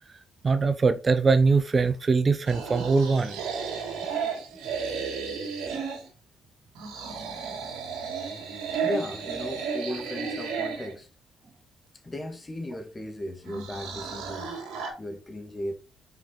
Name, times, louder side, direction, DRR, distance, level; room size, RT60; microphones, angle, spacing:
voice 1, 0.4-3.4, right 4 dB, 40° right, 0.7 m, -22 dB
sound 1, 2.4-6.1 6.7-10.9 13.4-14.9, right 5 dB, 80° right, 2.4 m, -33 dB
voice 2, 8.7-11.1 12.0-14.5 15.0-15.7, left 1 dB, 25° left, 2.1 m, -36 dB
6.0 x 5.1 x 4.1 m
supercardioid pair, 60°, 0 cm